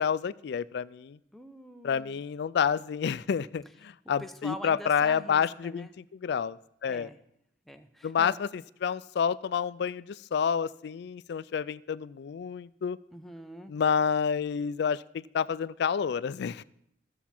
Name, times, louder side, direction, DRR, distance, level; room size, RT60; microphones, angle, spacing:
voice 1, 0.0-1.2 1.8-7.1 8.0-13.0 13.7-16.6, left 7 dB, 65° left, 18 dB, 0.3 m, -29 dB
voice 2, 1.3-2.2 4.2-5.9 6.9-7.2 7.7-8.4 13.1-13.7, equal, ahead, 6 dB, 0.6 m, -44 dB
14.5 x 7.1 x 4.3 m, 0.75 s
head